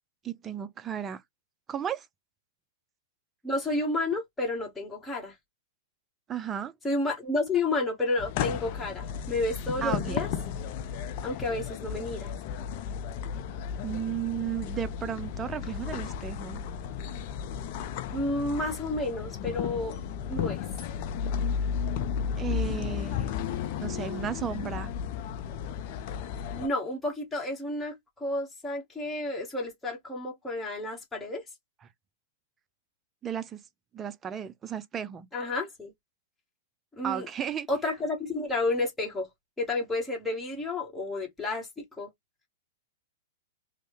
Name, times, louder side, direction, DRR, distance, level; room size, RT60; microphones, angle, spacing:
voice 1, 0.2-1.2 1.7-2.1 6.3-6.7 9.8-10.2 13.8-16.6 22.3-23.3 23.8-24.9 33.2-33.6 33.9-35.3 37.0-37.7, right 9 dB, 20° right, 0.5 m, -34 dB
voice 2, 3.4-5.3 6.8-10.3 11.2-12.3 18.1-20.0 20.3-20.6 26.6-31.4 35.3-35.9 37.0-37.3 37.7-39.3 39.6-41.7 42.0-42.1, left 2 dB, 10° left, 1.3 m, -31 dB
sound 1, 8.2-26.7, left 8 dB, 50° left, 0.5 m, -34 dB
3.1 x 2.1 x 3.1 m
hypercardioid pair, 110°, 0 cm